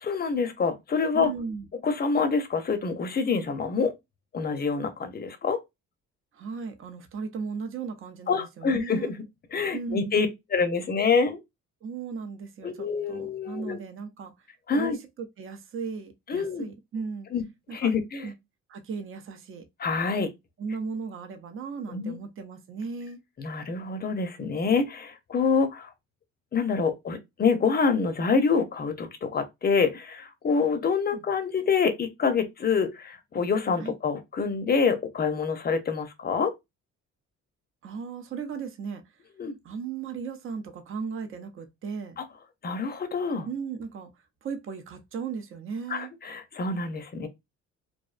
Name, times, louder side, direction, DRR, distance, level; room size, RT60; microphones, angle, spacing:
voice 1, 0.0-1.3 1.8-3.9 4.3-5.6 8.3-9.2 9.5-11.4 12.6-13.8 14.7-15.0 16.3-16.7 17.3-17.4 17.7-18.3 19.8-20.3 21.9-22.2 23.4-25.9 26.5-36.5 39.4-39.5 42.2-42.3 42.6-43.5 45.9-47.3, left 5 dB, 30° left, 0.5 m, -26 dB
voice 2, 1.1-1.7 6.3-9.1 9.7-10.3 11.8-14.3 14.7-17.3 17.7-17.9 18.2-18.3 18.7-19.7 20.6-23.2 31.1-31.2 33.8-33.9 37.8-39.0 39.6-42.2 43.5-44.1 44.4-46.1, right 5 dB, 45° right, 0.6 m, -36 dB
2.5 x 2.1 x 2.4 m
cardioid pair, 90°, 30 cm